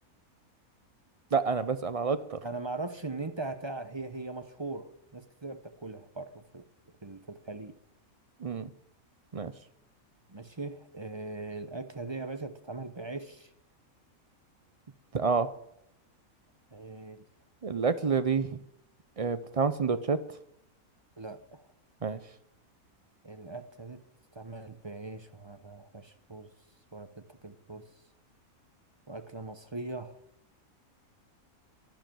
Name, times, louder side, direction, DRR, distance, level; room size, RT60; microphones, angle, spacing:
voice 1, 1.3-2.4 8.4-8.7 9.3-9.5 15.1-15.5 17.6-18.6 19.2-20.2 22.0-22.2, right 5 dB, 45° right, 12 dB, 0.4 m, -28 dB
voice 2, 2.4-6.6 7.0-7.8 10.3-13.5 16.7-17.2 21.2-21.7 23.2-24.0 24.3-26.5 26.9-27.8 29.1-30.2, right 3 dB, 20° right, 9 dB, 0.8 m, -40 dB
12.0 x 11.5 x 7.7 m, 0.79 s
omnidirectional pair, 1.5 m